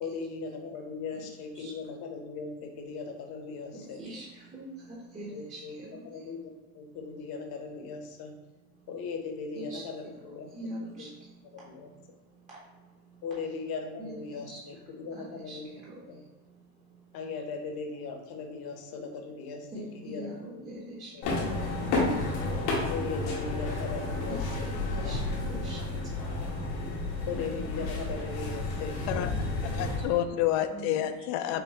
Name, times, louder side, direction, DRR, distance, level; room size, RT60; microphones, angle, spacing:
voice 1, 0.0-4.0 5.3-5.7 6.0-6.4 6.7-8.3 8.9-10.5 11.0-11.1 11.5-11.9 13.2-15.7 16.1-16.2 17.1-19.7 19.9-20.6 21.1-21.2 22.9-24.7 24.9-25.5 25.9-26.0 27.3-29.1, left 4 dB, 50° left, 3 dB, 0.9 m, -38 dB
voice 2, 3.7-6.3 9.5-9.8 10.5-11.6 12.5-12.6 14.0-14.6 15.1-16.1 19.7-21.8 24.3-25.8 29.1-30.1 30.7-30.9, right 1 dB, 15° right, -6 dB, 0.7 m, -43 dB
sound 1, 21.2-30.0, left 2 dB, 85° left, 1.3 m, -31 dB
voice 3, 29.8-31.6, left 12 dB, 70° left, 9 dB, 0.6 m, -29 dB
5.6 x 2.2 x 2.9 m, 1.2 s
supercardioid pair, 115°, 49 cm